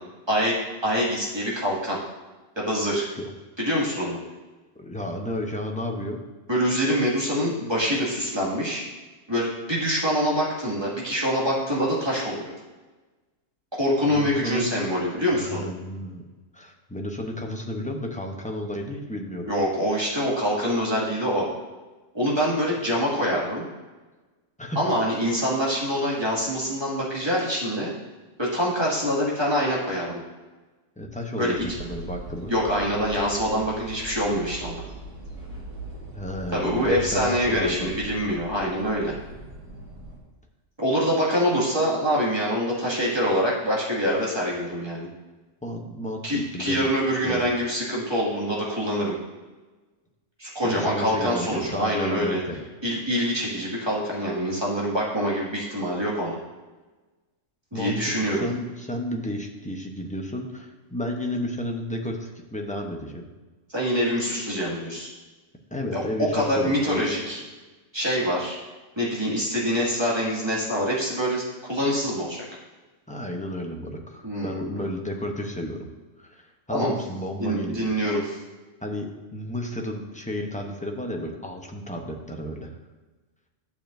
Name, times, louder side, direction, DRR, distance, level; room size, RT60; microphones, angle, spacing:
voice 1, 0.3-2.0 2.6-3.1 3.6-4.2 6.5-8.9 9.3-12.5 13.8-15.7 19.5-21.5 22.1-23.6 24.8-27.9 28.4-30.2 31.4-31.6 32.5-34.9 36.5-39.1 40.8-45.1 46.2-49.2 50.4-52.4 52.8-56.4 57.7-58.5 63.7-65.1 65.9-67.4 67.9-68.6 69.0-72.4 74.2-74.7 76.7-76.9 77.4-78.4, equal, 20° right, -6 dB, 2.1 m, -25 dB
voice 2, 4.8-6.2 14.1-14.7 15.3-16.2 16.5-19.5 24.6-24.8 31.0-32.5 36.1-37.9 45.6-46.3 46.5-46.9 47.2-47.5 50.6-52.6 57.7-63.2 65.7-67.2 73.1-75.9 76.2-77.9 78.8-82.7, left 1 dB, 5° left, 1 dB, 0.7 m, -32 dB
sound 1, 31.5-40.2, right 1 dB, 80° right, 2.2 m, -40 dB
11.5 x 6.9 x 2.6 m, 1.2 s
omnidirectional pair, 1.3 m